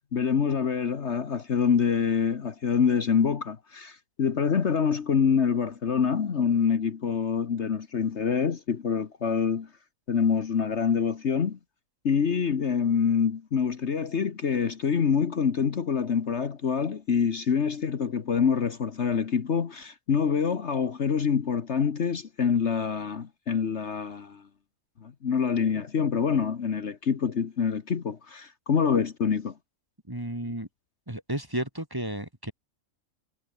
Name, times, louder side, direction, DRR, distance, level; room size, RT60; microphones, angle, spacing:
voice 1, 0.0-9.7 10.1-11.6 12.0-24.4 25.0-29.5, left 6 dB, 55° left, 1.5 m, -26 dB
voice 2, 30.1-30.7 31.1-32.5, right 1 dB, 15° right, 2.4 m, -33 dB
omnidirectional pair, 1.5 m